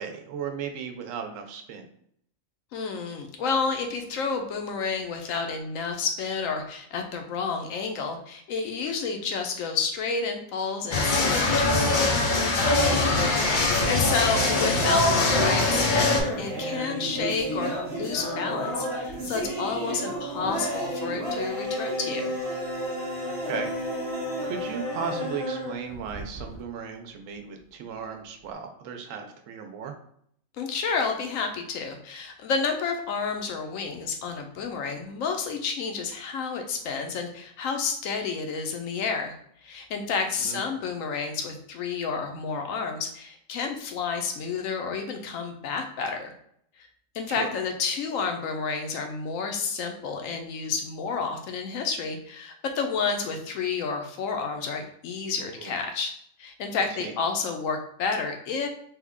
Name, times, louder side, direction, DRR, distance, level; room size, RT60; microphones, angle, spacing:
voice 1, 0.0-1.9 23.5-23.7 24.0-24.1 24.4-30.0 40.4-40.6 47.4-47.5 55.4-55.7 56.8-57.1, right 6 dB, 75° right, 5 dB, 1.0 m, -36 dB
voice 2, 2.7-13.2 13.5-22.3 30.6-39.3 39.6-46.3 46.8-46.9 47.1-56.1 56.4-58.7, left 5 dB, 80° left, 5 dB, 1.0 m, -30 dB
sound 1, 10.9-16.2, left 2 dB, 50° left, 0.6 m, -22 dB
sound 2, 13.2-26.6, equal, 30° right, 1.0 m, -32 dB
3.3 x 2.2 x 3.6 m, 0.67 s
omnidirectional pair, 1.4 m